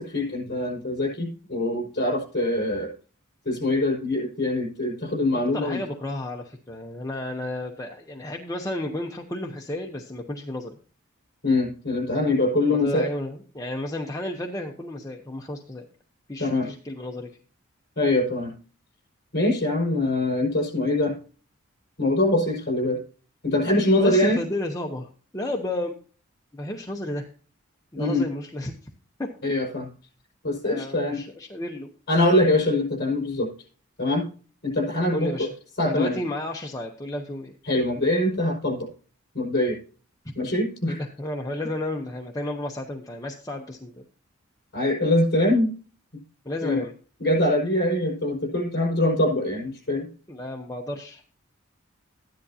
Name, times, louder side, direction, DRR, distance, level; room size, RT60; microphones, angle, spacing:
voice 1, 0.0-2.9 3.5-5.8 11.4-13.1 16.4-16.7 18.0-18.5 19.3-21.2 22.0-23.0 23.4-24.4 28.0-28.3 29.4-29.9 30.4-31.2 32.1-33.5 34.0-34.3 34.6-35.5 35.8-36.2 37.6-38.9 39.3-39.8 40.4-41.0 44.7-45.7 46.1-46.2 46.6-46.8 47.2-50.1, left 1 dB, 50° left, 0 dB, 5.4 m, -23 dB
voice 2, 5.3-10.7 12.7-15.8 16.3-17.3 24.0-25.9 26.5-27.3 27.9-28.7 29.2-29.3 30.6-31.9 35.1-35.5 35.8-37.5 40.9-44.0 46.4-46.9 50.3-51.2, left 1 dB, 15° left, 1 dB, 0.9 m, -32 dB
13.5 x 10.5 x 2.8 m, 0.39 s
head